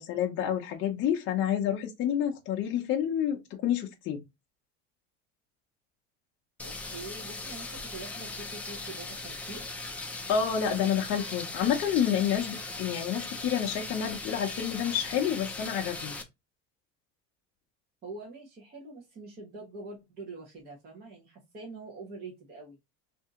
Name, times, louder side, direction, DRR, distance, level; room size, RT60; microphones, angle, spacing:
voice 1, 0.0-4.2 10.3-16.2, left 9 dB, 40° left, 0.6 m, -29 dB
sound 1, 6.6-16.2, left 3 dB, 5° left, 0.3 m, -39 dB
voice 2, 6.6-9.6 18.0-22.8, right 3 dB, 30° right, 1.0 m, -44 dB
2.7 x 2.7 x 3.6 m
cardioid pair, 155°, 29 cm